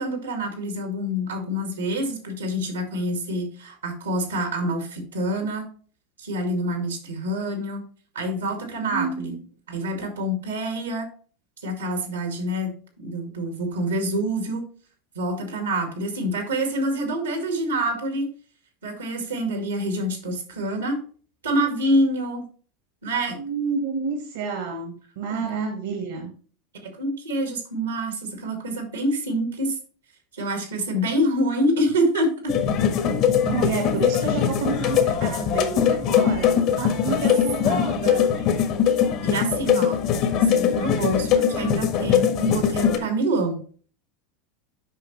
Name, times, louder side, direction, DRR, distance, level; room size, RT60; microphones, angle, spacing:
voice 1, 0.0-5.7 6.2-7.8 8.1-9.4 9.7-11.1 11.6-14.6 15.1-18.3 18.8-21.0 21.4-22.4 23.0-23.4 25.3-25.4 26.8-29.8 30.3-32.5 37.0-37.1 37.7-37.8 39.2-40.0 40.4-43.6, right 1 dB, 85° right, 5 dB, 2.0 m, -26 dB
voice 2, 8.8-9.4 23.4-26.3 33.0-38.5, right 5 dB, 65° right, 4 dB, 1.5 m, -30 dB
sound 1, 32.5-43.0, left 8 dB, 55° left, 1.4 m, -21 dB
7.9 x 5.5 x 3.2 m, 0.42 s
hypercardioid pair, 85°, 0 cm